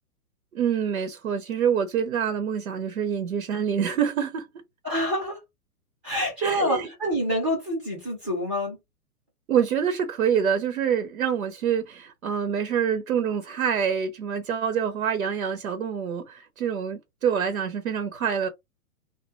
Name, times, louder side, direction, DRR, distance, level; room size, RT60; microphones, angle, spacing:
voice 1, 0.5-4.6 6.4-6.9 9.5-18.5, right 8 dB, 65° right, 0.6 m, -26 dB
voice 2, 4.8-5.4 6.0-8.8, equal, 5° right, 0.4 m, -27 dB
2.3 x 2.1 x 2.6 m
figure-of-eight pair, 115°, 45 cm